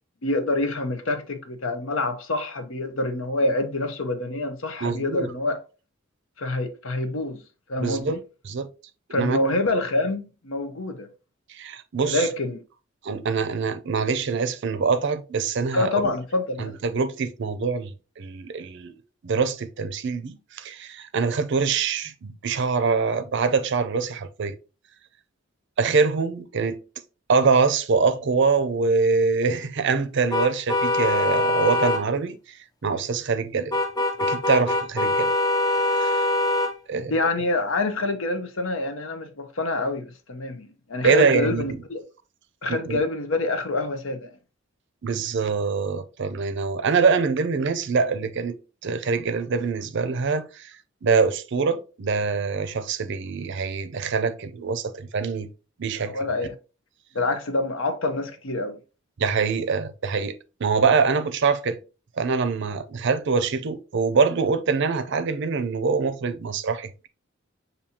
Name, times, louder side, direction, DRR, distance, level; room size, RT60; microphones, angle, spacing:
voice 1, 0.2-5.6 6.4-7.4 7.7-8.2 9.1-11.1 12.0-12.6 15.7-16.7 37.1-42.0 42.6-44.4 56.0-56.5 57.1-58.8, left 2 dB, 70° left, 0.8 m, -26 dB
voice 2, 4.8-5.3 7.8-8.2 8.5-8.7 9.1-9.4 11.5-12.3 13.0-15.9 16.6-18.9 19.2-24.5 25.8-26.8 27.3-32.4 32.8-33.8 34.2-35.3 36.0-36.1 36.9-37.2 41.0-41.8 42.7-43.0 45.0-48.5 48.8-50.7 51.0-55.5 55.8-56.2 59.2-61.8 62.2-67.1, right 5 dB, 60° right, 0.5 m, -24 dB
sound 1, 30.3-32.0 33.7-36.7, left 2 dB, 20° left, 0.5 m, -23 dB
6.9 x 2.7 x 2.8 m
head